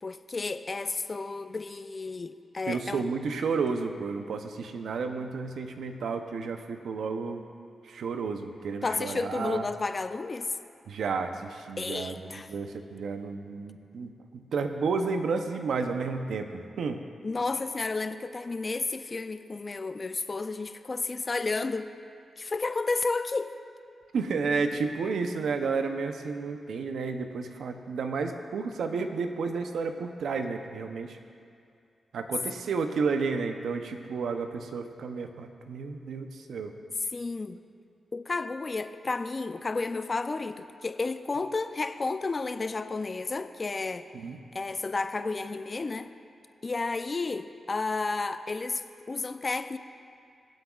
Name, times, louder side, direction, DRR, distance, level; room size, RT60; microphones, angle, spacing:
voice 1, 0.0-3.0 8.8-10.6 11.8-12.5 17.2-21.9 22.4-23.5 37.1-37.6 38.1-44.1 44.5-46.1 46.6-49.8, left 3 dB, 40° left, 10 dB, 0.5 m, -32 dB
voice 2, 2.7-7.4 7.8-9.6 10.9-17.0 24.1-31.2 32.1-36.7 44.1-44.4, right 4 dB, 80° right, 6 dB, 0.7 m, -31 dB
23.0 x 7.9 x 2.4 m, 2.4 s
cardioid pair, 55°, 0 cm